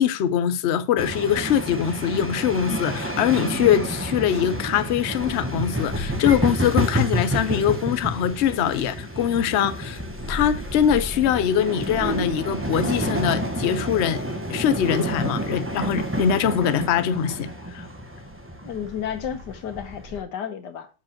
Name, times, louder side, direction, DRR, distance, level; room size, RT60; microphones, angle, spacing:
voice 1, 0.0-10.0 10.3-14.2 14.5-17.5 17.7-17.9, left 9 dB, 60° left, 0.7 m, -23 dB
sound 1, 1.0-20.2, equal, 10° right, 0.9 m, -29 dB
voice 2, 18.6-20.9, left 8 dB, 85° left, 1.7 m, -32 dB
7.1 x 5.1 x 5.8 m
omnidirectional pair, 1.8 m